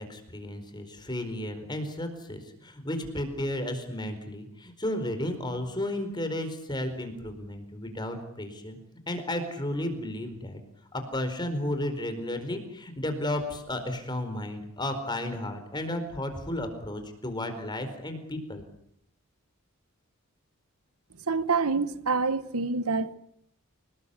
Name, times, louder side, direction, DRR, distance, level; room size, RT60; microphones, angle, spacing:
voice 1, 0.0-8.8 9.1-10.6 10.9-18.6, left 1 dB, 20° left, 4.5 m, -33 dB
voice 2, 21.3-23.1, right 4 dB, 80° right, 1.3 m, -27 dB
28.5 x 20.0 x 8.4 m
head